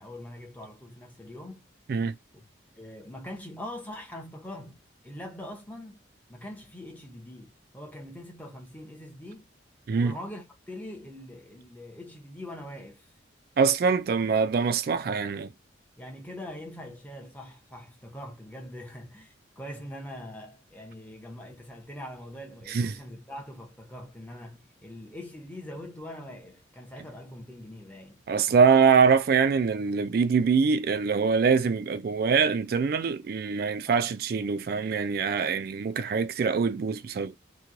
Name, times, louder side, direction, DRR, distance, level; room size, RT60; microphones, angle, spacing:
voice 1, 0.0-1.7 2.3-2.5 2.8-4.8 5.0-6.0 6.3-9.5 10.0-13.1 16.0-28.6 33.8-34.1, left 1 dB, 10° left, 0.8 m, -43 dB
voice 2, 13.6-15.5 22.7-22.9 28.3-37.4, right 5 dB, 50° right, 0.3 m, -24 dB
3.0 x 2.2 x 3.7 m
head